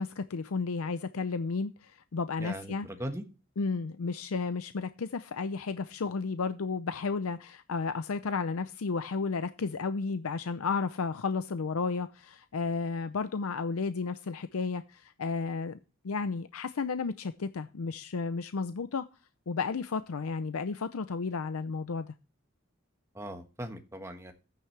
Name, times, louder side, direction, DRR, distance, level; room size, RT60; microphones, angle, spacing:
voice 1, 0.0-2.9 3.6-15.8 16.0-19.1 19.5-22.1, left 4 dB, 90° left, 0.6 m, -33 dB
voice 2, 2.4-3.2 23.1-24.3, equal, 15° right, 1.3 m, -39 dB
12.5 x 9.4 x 3.3 m
head